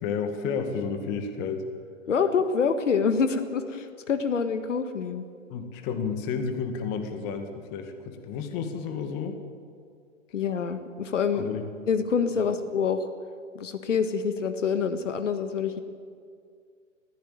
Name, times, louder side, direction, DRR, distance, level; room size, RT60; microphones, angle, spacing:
voice 1, 0.0-1.6 5.5-9.4 11.3-11.6, left 6 dB, 25° left, 6 dB, 2.0 m, -31 dB
voice 2, 2.1-5.2 10.3-11.5 11.9-13.1 13.6-15.8, left 6 dB, 65° left, 9 dB, 1.8 m, -26 dB
21.0 x 15.5 x 8.9 m, 2.2 s
hypercardioid pair, 135°, 39 cm